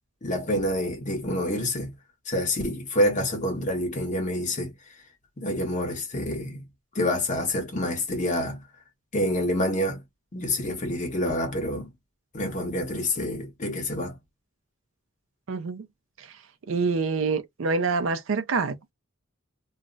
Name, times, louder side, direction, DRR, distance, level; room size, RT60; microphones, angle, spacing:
voice 1, 0.2-1.9 2.3-4.7 5.4-6.6 6.9-8.6 9.1-10.0 10.3-11.9 12.3-14.1, left 1 dB, 40° left, 1.0 m, -27 dB
voice 2, 15.5-15.9 16.2-16.4 16.7-18.9, right 4 dB, 75° right, 0.5 m, -26 dB
2.4 x 2.1 x 3.8 m
head